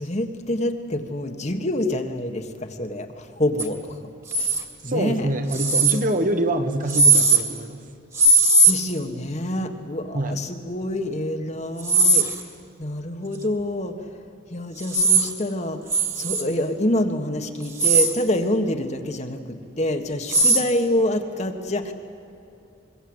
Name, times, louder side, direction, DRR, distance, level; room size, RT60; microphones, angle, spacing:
voice 1, 0.0-4.0 4.3-4.5 4.8-5.3 8.6-12.3 12.8-14.1 14.5-21.9, left 1 dB, 35° left, 6 dB, 1.6 m, -27 dB
sound 1, 3.6-3.7 4.3-4.6 5.5-6.0 6.9-7.4 8.1-8.7 11.8-12.4 14.8-15.3 15.9-16.4 17.6-18.1 20.3-20.6, right 2 dB, 15° right, 2.3 m, -18 dB
voice 2, 4.8-7.8 10.1-10.3, right 1 dB, 45° right, 6 dB, 1.7 m, -25 dB
25.0 x 23.0 x 8.0 m, 2.7 s
head